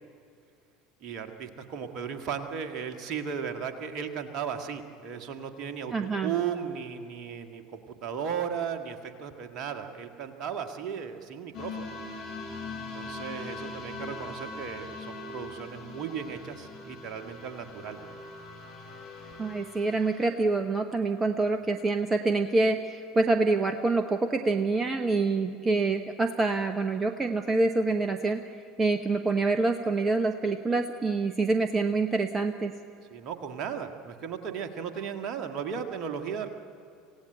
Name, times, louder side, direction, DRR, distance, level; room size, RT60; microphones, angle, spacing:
voice 1, 1.0-11.9 12.9-18.0 33.1-36.5, right 7 dB, 45° right, 7 dB, 1.8 m, -36 dB
voice 2, 5.9-6.3 19.4-28.5 28.8-32.7, right 3 dB, 20° right, 8 dB, 0.9 m, -26 dB
sound 1, 11.5-20.3, left 3 dB, 40° left, 7.4 m, -41 dB
27.0 x 16.5 x 7.9 m, 2.5 s
figure-of-eight pair, 70°, 0 cm